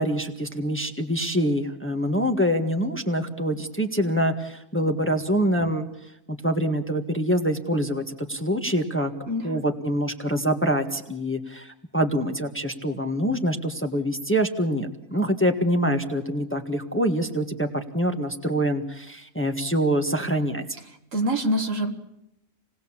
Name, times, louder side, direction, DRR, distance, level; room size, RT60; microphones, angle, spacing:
voice 1, 0.0-5.9 6.3-9.1 9.4-20.6, equal, 10° left, 5 dB, 1.5 m, -25 dB
voice 2, 9.3-9.6 21.1-21.9, equal, 65° right, 5 dB, 2.3 m, -25 dB
28.0 x 19.5 x 7.3 m, 0.84 s
omnidirectional pair, 1.4 m